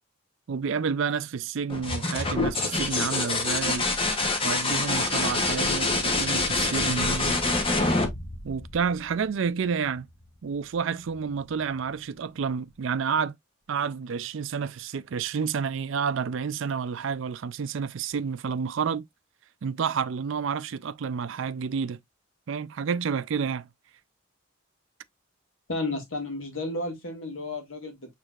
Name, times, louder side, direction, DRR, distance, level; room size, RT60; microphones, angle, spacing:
voice 1, 0.5-3.9 4.4-7.4 8.4-10.1 10.4-13.4 13.7-19.1 19.6-22.0 22.5-23.7, right 6 dB, 65° right, 0.4 m, -29 dB
sound 1, 1.7-9.3 11.1-11.6, left 2 dB, 25° left, 0.9 m, -26 dB
voice 2, 25.7-28.1, left 2 dB, 70° left, 1.6 m, -32 dB
6.3 x 3.3 x 2.4 m
head